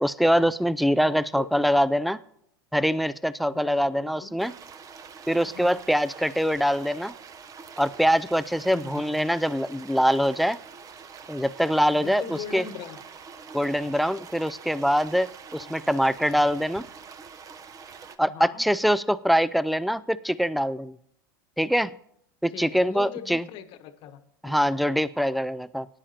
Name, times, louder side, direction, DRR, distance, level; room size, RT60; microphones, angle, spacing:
voice 1, 0.0-2.2 2.7-4.5 5.3-7.1 7.8-10.6 11.3-12.6 13.5-16.8 18.2-21.0 21.6-21.9 22.4-23.4 24.4-25.9, equal, ahead, 18 dB, 0.3 m, -24 dB
voice 2, 1.0-1.7 3.5-4.4 5.4-5.8 8.7-9.3 11.9-13.0 15.6-15.9 18.2-18.6 22.5-24.7, left 8 dB, 50° left, 11 dB, 1.1 m, -41 dB
sound 1, 4.4-18.2, right 6 dB, 30° right, 0.9 m, -45 dB
19.0 x 10.0 x 2.9 m, 0.74 s
hypercardioid pair, 95°, 11 cm